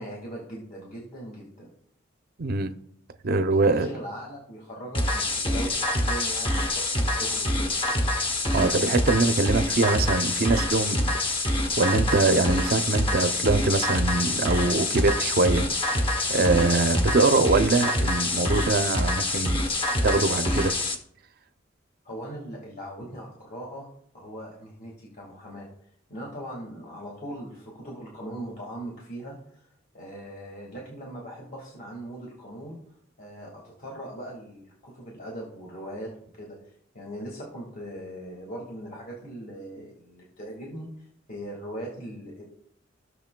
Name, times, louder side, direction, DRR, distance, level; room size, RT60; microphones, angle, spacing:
voice 1, 0.0-1.7 3.6-7.7 22.0-23.9 24.1-25.7 26.1-29.7 29.9-32.8 33.2-36.1 36.4-36.6 36.9-42.4, right 1 dB, 50° left, 1.9 m, -40 dB
voice 2, 2.4-2.7 3.2-3.9 8.5-11.1 11.5-19.7 20.0-20.7, right 3 dB, 55° right, 0.6 m, -23 dB
sound 1, 4.9-20.9, left 1 dB, 30° left, 1.1 m, -26 dB
16.0 x 6.4 x 2.2 m
head